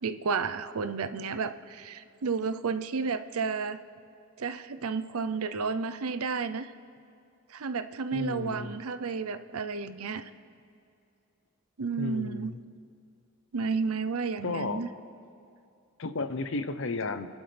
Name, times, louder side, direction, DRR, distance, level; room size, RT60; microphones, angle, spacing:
voice 1, 0.0-3.8 4.4-6.7 7.5-10.3 11.8-12.5 13.5-14.9, right 5 dB, 75° right, 11 dB, 0.6 m, -32 dB
voice 2, 8.1-8.7 12.0-12.6 14.4-14.9 16.0-17.3, left 3 dB, 60° left, 10 dB, 0.7 m, -33 dB
29.0 x 11.5 x 3.4 m, 2.5 s
head